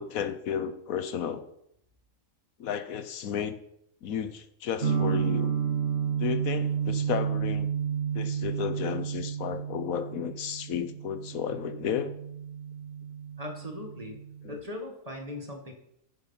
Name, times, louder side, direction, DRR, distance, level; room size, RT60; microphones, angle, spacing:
voice 1, 0.0-1.5 2.6-3.6 4.0-5.5 6.2-7.7 8.1-12.1 14.4-14.6, left 8 dB, 85° left, 11 dB, 1.3 m, -33 dB
sound 1, 4.8-14.6, right 7 dB, 45° right, 1.5 m, -31 dB
voice 2, 13.4-14.2 14.5-15.7, left 1 dB, 25° right, 3 dB, 1.8 m, -39 dB
9.6 x 9.2 x 5.7 m, 0.75 s
omnidirectional pair, 1.4 m